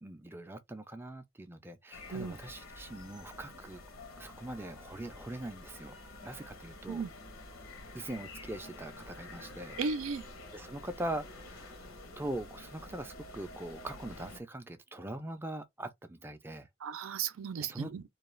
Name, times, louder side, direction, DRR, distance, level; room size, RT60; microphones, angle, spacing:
voice 1, 0.0-3.8 4.2-5.9 6.2-7.0 7.9-9.8 10.5-16.7 17.6-17.9, right 1 dB, 10° right, 0.3 m, -42 dB
sound 1, 1.9-14.4, left 2 dB, 80° left, 0.8 m, -49 dB
voice 2, 9.8-10.3 16.8-18.0, right 5 dB, 85° right, 0.4 m, -35 dB
2.3 x 2.3 x 3.0 m
head